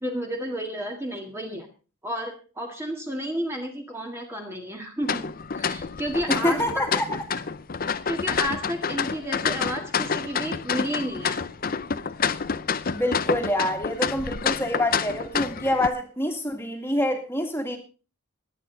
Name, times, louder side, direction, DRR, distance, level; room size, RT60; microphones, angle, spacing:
voice 1, 0.0-1.7 2.0-5.2 5.5-6.9 7.8-11.5, equal, 10° right, 2 dB, 1.8 m, -31 dB
sound 1, 5.0-15.9, left 6 dB, 40° left, 0.6 m, -28 dB
voice 2, 6.3-7.2 12.9-17.8, left 1 dB, 10° left, 4 dB, 2.1 m, -26 dB
21.0 x 9.0 x 3.9 m, 0.35 s
head